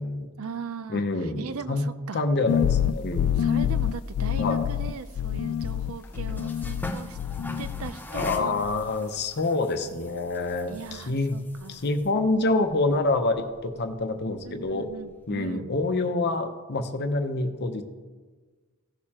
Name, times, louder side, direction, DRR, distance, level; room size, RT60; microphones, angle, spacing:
voice 1, 0.4-2.2 3.4-7.2 7.6-8.5 10.7-11.8 14.4-15.7, right 5 dB, 70° right, 12 dB, 0.5 m, -39 dB
voice 2, 0.9-1.8 2.1-3.3 4.4-4.6 8.1-11.4 11.7-14.9 15.3-17.8, left 2 dB, 50° left, 7 dB, 0.8 m, -27 dB
sound 1, 2.5-7.9 8.2-8.9, left 9 dB, 75° left, 0.3 m, -27 dB
sound 2, 4.1-15.3, left 1 dB, 10° left, 0.6 m, -44 dB
15.5 x 6.6 x 2.9 m, 1.4 s
head